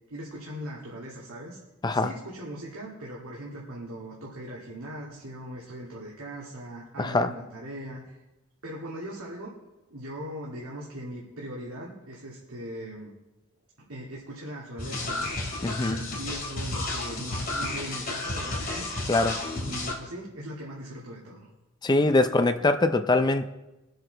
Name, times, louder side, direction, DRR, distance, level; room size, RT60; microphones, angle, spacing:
voice 1, 0.1-1.6 1.9-8.2 8.6-9.5 9.9-13.1 13.8-15.3 15.8-18.9 19.5-21.5, right 1 dB, 75° right, -4 dB, 2.2 m, -40 dB
voice 2, 7.0-7.3 15.6-16.0 19.1-19.4 21.8-23.5, left 2 dB, 20° left, 9 dB, 0.4 m, -23 dB
sound 1, 14.8-19.9, left 2 dB, 40° left, 2.6 m, -32 dB
22.0 x 7.8 x 4.0 m, 1.0 s
head